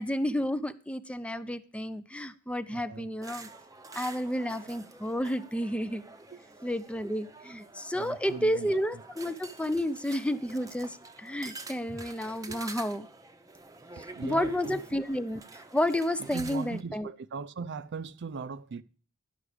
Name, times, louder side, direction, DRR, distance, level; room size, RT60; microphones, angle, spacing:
voice 1, 0.0-3.5 3.9-6.0 6.6-13.1 14.0-17.1, equal, 5° left, 0.4 m, -31 dB
voice 2, 2.7-3.1 6.3-6.4 7.9-8.7 12.4-12.6 14.0-14.8 16.2-18.8, right 5 dB, 55° right, 0.4 m, -39 dB
sound 1, 3.2-16.8, right 3 dB, 15° right, 0.7 m, -48 dB
11.0 x 6.0 x 4.8 m
head